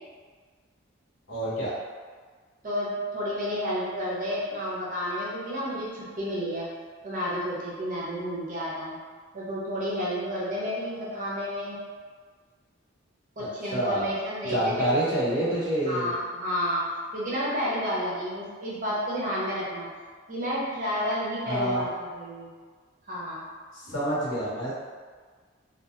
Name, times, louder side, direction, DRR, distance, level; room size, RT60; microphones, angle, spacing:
voice 1, 1.3-1.7 13.7-14.1 14.5-16.1 21.5-21.8 23.7-24.7, right 1 dB, 65° left, -8 dB, 0.9 m, -27 dB
voice 2, 2.6-6.7 7.0-9.0 9.3-11.8 13.4-14.9 15.9-19.9 20.3-22.5 23.1-23.4, equal, 40° right, -6 dB, 0.6 m, -31 dB
2.8 x 2.3 x 2.4 m, 1.6 s
head